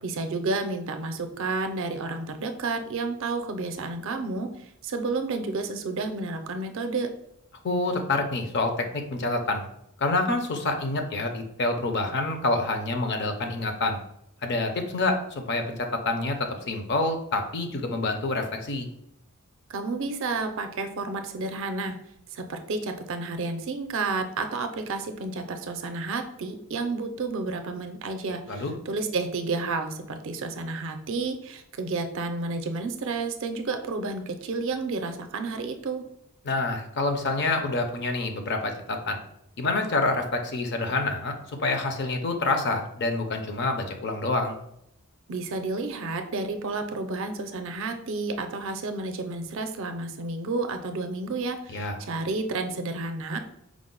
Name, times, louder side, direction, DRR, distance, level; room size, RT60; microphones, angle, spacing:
voice 1, 0.0-7.1 19.7-22.0 22.3-36.0 45.3-53.4, right 3 dB, 60° right, 7 dB, 0.4 m, -31 dB
voice 2, 7.6-9.7 10.0-14.0 14.4-18.9 28.5-28.7 36.4-39.2 39.6-41.3 41.6-44.6 51.7-51.9, left 2 dB, 50° left, 5 dB, 0.5 m, -27 dB
4.7 x 2.0 x 3.8 m, 0.77 s
head